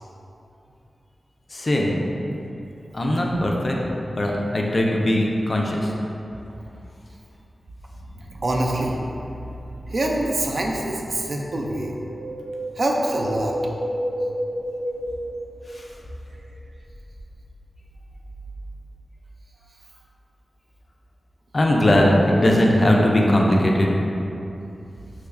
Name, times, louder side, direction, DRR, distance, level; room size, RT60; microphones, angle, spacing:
voice 1, 1.5-1.9 2.9-3.8 4.1-5.9 21.5-23.9, left 1 dB, 35° left, -1 dB, 0.3 m, -19 dB
voice 2, 8.1-12.0 12.8-13.5, right 1 dB, 50° right, 0 dB, 0.3 m, -26 dB
Wind, 11.7-16.1 16.3-16.4, equal, 85° right, 0.6 m, -30 dB
3.0 x 2.2 x 3.6 m, 2.8 s
wide cardioid pair, 125°, 0 cm